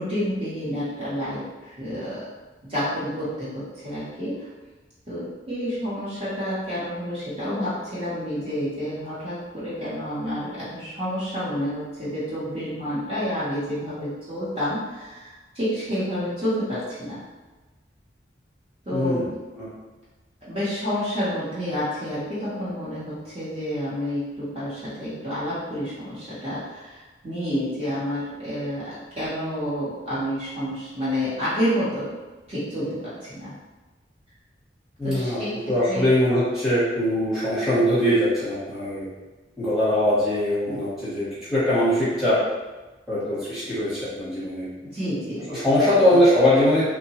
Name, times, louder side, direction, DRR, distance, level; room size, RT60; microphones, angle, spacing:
voice 1, 0.0-2.3 2.6-4.5 5.1-17.2 18.9-19.3 20.4-32.1 32.5-33.5 35.0-35.6 35.9-36.1 40.7-40.8 44.8-45.5, equal, 30° right, -11 dB, 0.8 m, -29 dB
voice 2, 18.9-19.3 19.5-19.7 35.0-35.4 35.7-39.1 39.6-42.4 43.1-44.6 45.5-46.9, left 1 dB, ahead, -12 dB, 0.9 m, -21 dB
2.7 x 2.1 x 2.8 m, 1.2 s
head